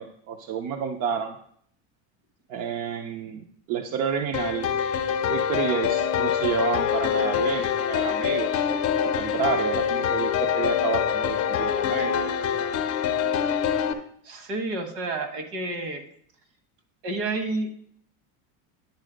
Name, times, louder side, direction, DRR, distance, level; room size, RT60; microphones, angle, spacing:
voice 1, 0.0-1.4 2.5-4.7 5.3-8.7 9.0-12.1, right 7 dB, 50° right, 5 dB, 0.6 m, -30 dB
sound 1, 4.3-13.9, left 8 dB, 35° left, 0.7 m, -25 dB
voice 2, 14.2-16.0 17.0-17.7, right 2 dB, 65° right, 8 dB, 1.5 m, -30 dB
9.7 x 4.0 x 5.1 m, 0.63 s
cardioid pair, 150°, 42 cm